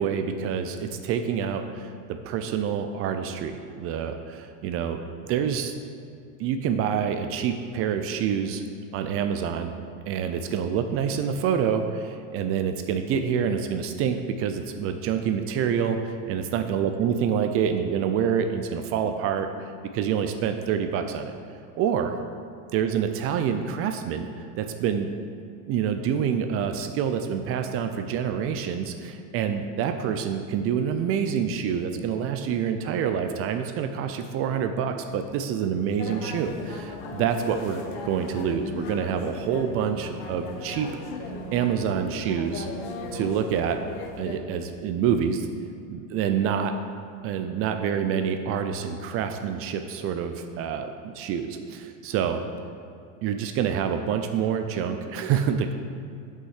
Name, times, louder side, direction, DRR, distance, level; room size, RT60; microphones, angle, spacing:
voice 1, 0.0-5.0 5.3-5.7 6.4-8.6 8.9-9.7 10.1-21.3 21.8-22.2 22.7-25.1 25.7-40.9 41.5-42.7 43.1-43.8 44.2-45.5 45.9-46.7 47.2-52.4 53.2-55.7, right 7 dB, 35° right, 7 dB, 0.4 m, -27 dB
sound 1, 36.0-44.4, left 3 dB, 55° left, 1.1 m, -37 dB
6.4 x 5.4 x 6.4 m, 2.5 s
supercardioid pair, 130°, 40 cm